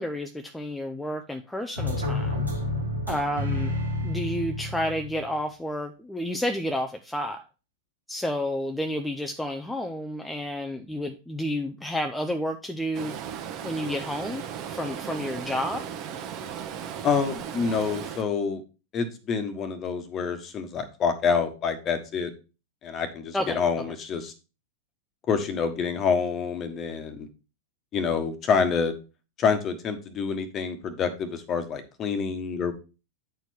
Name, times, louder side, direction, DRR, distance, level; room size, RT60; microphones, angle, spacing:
voice 1, 0.0-2.5 3.1-3.7 4.0-7.4 8.1-13.2 13.6-15.8 23.3-23.6, left 1 dB, 5° left, 5 dB, 0.6 m, -30 dB
sound 1, 1.8-5.4, left 2 dB, 80° right, 1.9 m, -29 dB
Stream, 12.9-18.2, right 8 dB, 40° right, 1.1 m, -36 dB
voice 2, 17.0-18.6 18.9-22.3 22.8-24.3 25.3-27.3 27.9-28.9 29.4-32.7, left 6 dB, 30° left, 8 dB, 1.3 m, -27 dB
9.0 x 4.6 x 4.3 m, 0.32 s
figure-of-eight pair, 90°, 0 cm